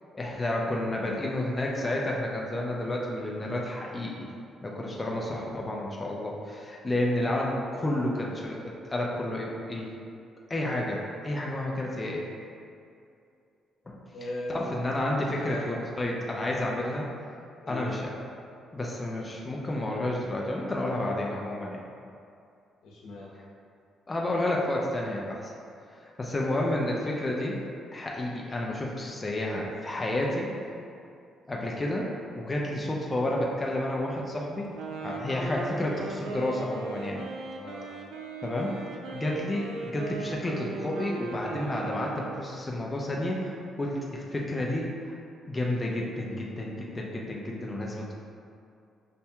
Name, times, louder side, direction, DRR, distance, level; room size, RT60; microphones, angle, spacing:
voice 1, 0.1-4.3 4.6-9.9 10.5-12.2 13.9-14.0 14.5-17.1 17.7-18.0 18.7-21.8 24.1-25.5 26.0-27.6 27.9-30.5 31.5-32.1 32.4-37.2 38.4-38.8 39.1-44.9 45.5-48.1, left 1 dB, 20° left, -2 dB, 0.5 m, -30 dB
voice 2, 14.1-14.9 15.3-16.1 17.7-18.0 22.8-23.3 37.6-37.9, left 1 dB, 85° left, -5 dB, 0.8 m, -38 dB
Wind instrument woodwind instrument, 34.6-42.5, right 3 dB, 85° right, 0.4 m, -38 dB
5.6 x 2.6 x 2.3 m, 2.5 s
cardioid pair, 90°, 0 cm